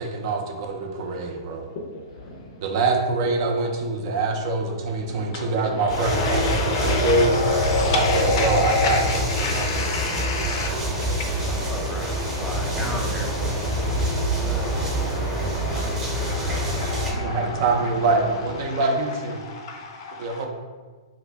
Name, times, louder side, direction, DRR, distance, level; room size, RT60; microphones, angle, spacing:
voice 1, 0.0-1.7 2.6-7.3 7.9-9.9 17.1-19.4 20.2-20.5, right 3 dB, 50° right, 3 dB, 0.5 m, -24 dB
Race car auto racing / Idling / Accelerating revving vroom, 2.1-18.7, left 1 dB, 90° left, 0.8 m, -40 dB
voice 2, 5.3-11.7 12.3-12.7 13.5-17.9 18.6-18.8 19.4-20.5, left 4 dB, 55° left, 3 dB, 0.5 m, -29 dB
sound 1, 5.9-17.1, right 1 dB, 20° right, 0.8 m, -26 dB
voice 3, 11.5-14.0 14.4-14.7, equal, 5° left, 0 dB, 0.5 m, -36 dB
2.8 x 2.6 x 3.3 m, 1.4 s
hypercardioid pair, 125°, 3 cm